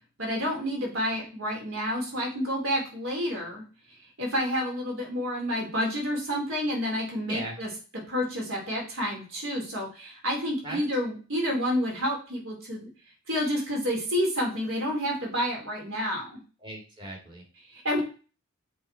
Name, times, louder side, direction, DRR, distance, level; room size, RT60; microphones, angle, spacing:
voice 1, 0.2-3.6 4.2-7.7 8.1-12.9 13.3-16.4 17.7-18.0, equal, 60° right, -1 dB, 2.6 m, -29 dB
voice 2, 16.6-17.4, right 1 dB, 20° right, -1 dB, 2.1 m, -38 dB
7.6 x 3.4 x 4.4 m, 0.36 s
head